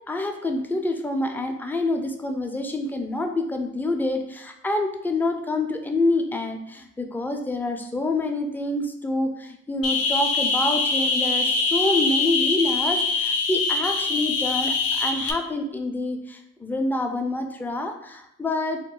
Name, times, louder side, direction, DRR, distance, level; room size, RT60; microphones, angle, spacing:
voice 1, 0.1-18.8, left 2 dB, 5° left, 4 dB, 0.3 m, -27 dB
sound 1, 9.8-15.3, left 4 dB, 50° left, 0.6 m, -23 dB
2.9 x 2.2 x 3.7 m, 0.77 s
cardioid pair, 90°, 30 cm